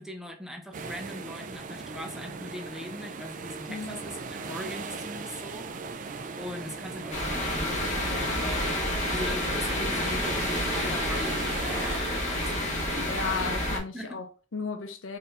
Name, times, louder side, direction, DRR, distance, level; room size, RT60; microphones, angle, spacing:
voice 1, 0.0-5.7 6.4-7.9 8.4-8.8 9.0-13.2 13.9-14.2, equal, 5° right, 0.6 m, -40 dB
sound 1, 0.7-12.0, right 4 dB, 40° right, 0.4 m, -39 dB
voice 2, 3.7-4.0 8.1-8.5 13.1-15.2, left 5 dB, 80° left, 0.6 m, -35 dB
sound 2, 7.1-13.8, left 1 dB, 40° left, 1.4 m, -29 dB
4.1 x 2.7 x 3.2 m
head